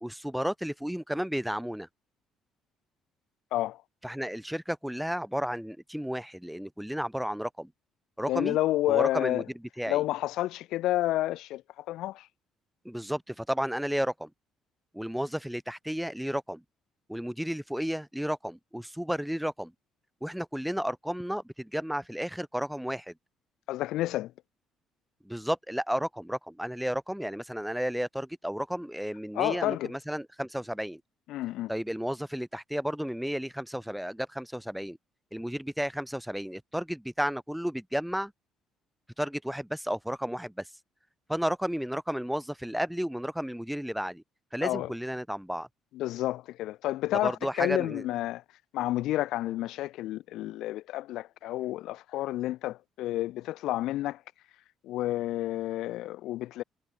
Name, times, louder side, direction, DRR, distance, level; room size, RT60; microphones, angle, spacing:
voice 1, 0.0-1.9 4.0-7.7 8.2-8.6 8.9-9.4 9.8-10.0 12.8-14.3 14.9-16.6 17.1-19.7 20.2-23.1 25.2-31.0 31.7-35.0 35.3-38.3 39.2-40.7 41.3-44.2 44.5-45.7 47.2-48.0, equal, ahead, 2.4 m, -32 dB
voice 2, 3.5-3.8 8.3-9.4 9.9-12.3 23.7-24.3 29.3-29.9 31.3-31.7 44.6-44.9 45.9-48.4 48.7-54.2 54.8-56.6, left 15 dB, 75° left, 2.3 m, -30 dB
supercardioid pair, 75°, 0 cm